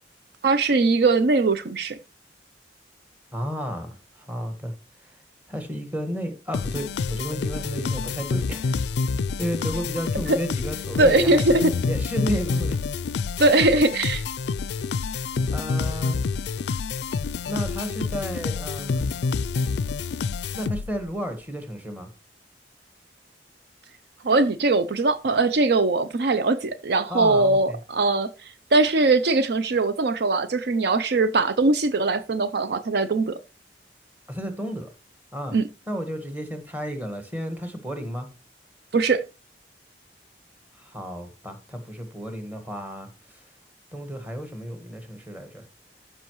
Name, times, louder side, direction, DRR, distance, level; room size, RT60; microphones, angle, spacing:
voice 1, 0.4-2.0 11.0-11.7 13.4-14.2 24.2-28.3 28.7-33.4 35.5-35.7 38.9-39.2, right 3 dB, 65° right, 0.5 m, -21 dB
voice 2, 3.3-4.7 5.0-5.2 5.5-8.8 9.4-12.8 15.5-16.2 17.4-19.1 20.6-22.1 27.1-27.8 34.3-34.9 35.3-35.6 35.9-38.3 40.7-43.5 43.9-45.6, equal, 10° right, 1.5 m, -32 dB
sound 1, 6.5-21.1, left 4 dB, 70° left, 0.4 m, -28 dB
14.0 x 5.6 x 3.1 m
head